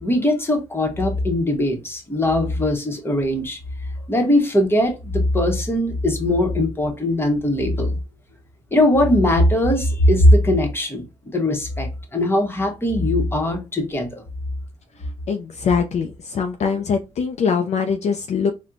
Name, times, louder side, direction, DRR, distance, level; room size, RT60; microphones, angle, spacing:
voice 1, 0.0-3.6 4.1-8.0 8.7-11.0 11.3-14.2, left 1 dB, 15° left, 1.0 m, -20 dB
voice 2, 15.3-18.5, left 6 dB, 55° left, 0.4 m, -22 dB
4.2 x 2.1 x 2.5 m
cardioid pair, 85°, 13 cm